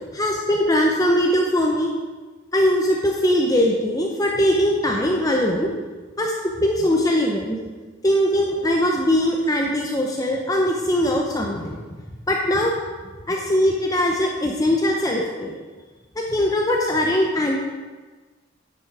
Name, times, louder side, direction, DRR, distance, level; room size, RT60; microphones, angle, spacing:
voice 1, 0.1-1.9 2.5-5.7 6.2-7.6 8.0-11.8 12.3-12.7 13.3-15.5 16.3-17.6, equal, 20° left, 0 dB, 0.7 m, -21 dB
9.5 x 6.2 x 4.8 m, 1.3 s
head